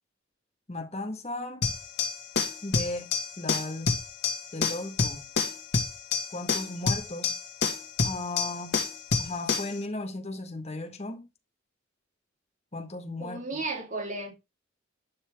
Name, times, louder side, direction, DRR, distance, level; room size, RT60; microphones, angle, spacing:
voice 1, 0.7-1.6 2.6-3.1 3.4-3.9 4.5-5.3 6.3-7.3 8.0-8.8 9.2-11.3 12.7-13.4, left 2 dB, 35° left, 1.6 m, -36 dB
sound 1, 1.6-9.8, left 4 dB, 60° left, 1.8 m, -29 dB
voice 2, 13.2-14.3, right 2 dB, 40° right, 3.7 m, -34 dB
11.5 x 6.6 x 3.6 m
head